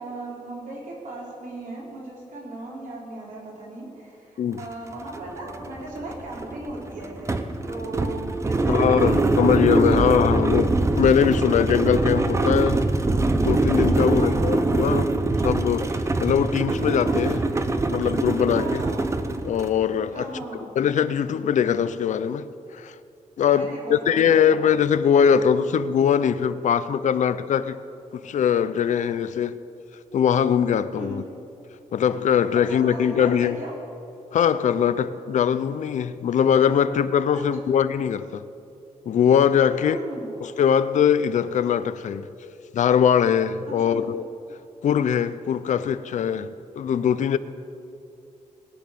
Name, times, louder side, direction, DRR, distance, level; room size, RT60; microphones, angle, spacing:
voice 1, 0.0-7.3 7.7-10.1 13.9-14.7 18.6-19.1 20.1-20.7 23.5-24.5 30.9-31.2 32.7-33.7 37.3-37.8 39.7-40.3 43.8-44.1 44.9-45.0, right 2 dB, 90° right, 4.4 m, -37 dB
sound 1, 4.6-4.7 5.0-19.8, right 2 dB, 20° right, 0.8 m, -23 dB
voice 2, 8.7-12.8 13.4-15.1 15.4-15.9 16.2-17.4 17.9-18.8 19.5-20.3 20.8-22.5 22.7-22.9 23.4-27.8 28.1-29.6 30.1-31.2 31.9-33.6 34.3-38.4 39.1-40.0 40.4-42.3 42.7-44.2 44.8-47.4, left 8 dB, 70° left, 0.6 m, -21 dB
20.5 x 9.4 x 6.9 m
wide cardioid pair, 165°, 13 cm